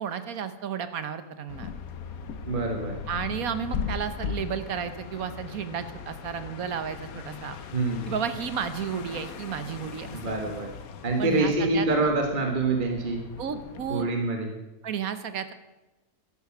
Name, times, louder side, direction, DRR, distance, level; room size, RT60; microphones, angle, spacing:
voice 1, 0.0-1.7 3.1-7.6 8.1-10.4 11.2-11.9 13.4-14.1 14.8-15.5, right 8 dB, 65° right, 12 dB, 1.3 m, -32 dB
sound 1, 1.5-14.0, left 6 dB, 65° left, 1.3 m, -39 dB
voice 2, 2.5-3.0 7.7-8.1 10.1-10.7 11.0-13.2 13.9-14.5, right 2 dB, 30° right, 3 dB, 1.5 m, -26 dB
13.0 x 11.0 x 5.9 m, 1.0 s
omnidirectional pair, 1.7 m